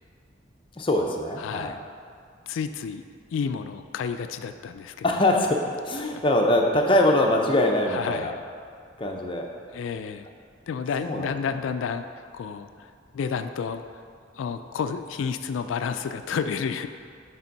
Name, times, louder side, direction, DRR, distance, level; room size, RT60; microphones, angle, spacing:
voice 1, 0.7-1.7 5.0-8.3 9.0-9.5 11.0-11.3, left 1 dB, 25° left, 1 dB, 0.6 m, -23 dB
voice 2, 1.4-1.8 2.5-3.0 3.3-5.1 7.9-8.4 9.7-10.3 10.7-13.8 14.3-16.9, left 6 dB, 80° left, 9 dB, 0.3 m, -31 dB
7.1 x 3.5 x 5.2 m, 2.2 s
head